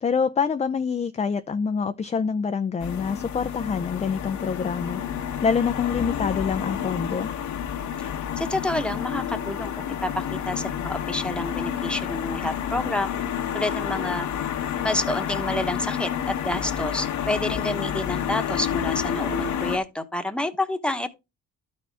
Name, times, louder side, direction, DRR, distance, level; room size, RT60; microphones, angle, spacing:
voice 1, 0.0-5.0 5.4-7.3, left 6 dB, 20° left, 0.4 m, -26 dB
sound 1, 2.8-19.8, left 9 dB, 70° left, 1.1 m, -29 dB
voice 2, 8.4-13.1 13.5-14.3 14.8-21.1, left 1 dB, 5° left, 1.0 m, -29 dB
12.0 x 4.2 x 3.4 m
cardioid pair, 90°, 30 cm